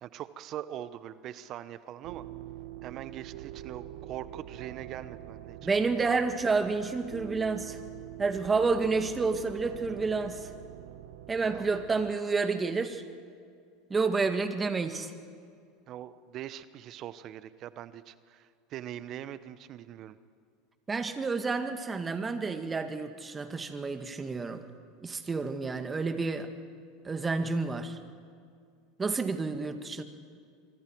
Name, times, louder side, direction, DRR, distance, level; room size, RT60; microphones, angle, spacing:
voice 1, 0.0-2.3 2.8-5.6 11.5-11.6 15.9-20.2, right 11 dB, 50° right, 14 dB, 0.9 m, -42 dB
sound 1, 2.0-12.1, right 13 dB, 70° right, 0.9 m, -45 dB
voice 2, 5.6-7.8 8.2-10.5 11.3-13.0 13.9-15.1 20.9-24.6 25.0-26.5 27.0-28.0 29.0-30.0, right 4 dB, 20° right, 8 dB, 1.9 m, -29 dB
26.0 x 24.0 x 4.6 m, 2.2 s
hypercardioid pair, 95°, 0 cm